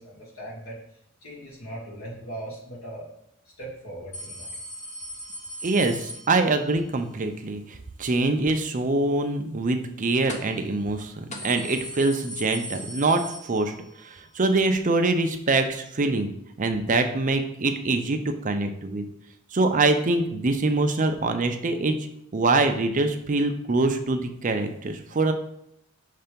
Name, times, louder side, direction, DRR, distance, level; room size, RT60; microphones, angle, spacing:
voice 1, 0.0-3.1 3.4-4.5, right 1 dB, 70° left, -5 dB, 2.1 m, -39 dB
sound 1, 4.1-6.8 10.3-10.7 11.0-11.1 11.3-14.0 14.4-14.5 15.5-15.6, left 1 dB, 35° left, 0.7 m, -39 dB
voice 2, 5.6-13.7 14.0-16.3 16.6-19.1 19.5-22.0 22.3-25.3, right 3 dB, 35° right, 6 dB, 0.5 m, -24 dB
5.6 x 3.3 x 5.2 m, 0.74 s
head